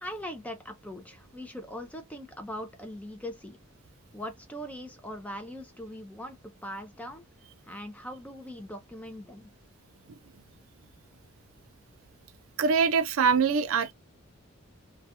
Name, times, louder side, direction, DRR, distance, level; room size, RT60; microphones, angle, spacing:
voice 1, 0.0-3.6 4.1-7.2 7.6-9.5, equal, 5° left, 0.4 m, -41 dB
voice 2, 12.6-13.9, right 5 dB, 70° right, 0.4 m, -23 dB
2.3 x 2.2 x 2.7 m
head